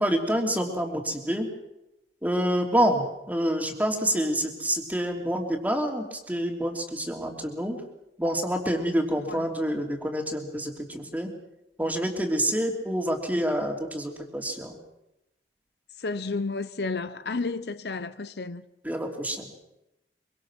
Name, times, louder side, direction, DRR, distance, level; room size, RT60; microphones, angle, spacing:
voice 1, 0.0-1.5 2.2-7.8 8.2-11.3 11.8-14.7 18.8-19.5, equal, 10° right, 3.1 m, -27 dB
voice 2, 16.0-18.6, left 3 dB, 65° left, 0.8 m, -32 dB
25.0 x 24.0 x 6.3 m
head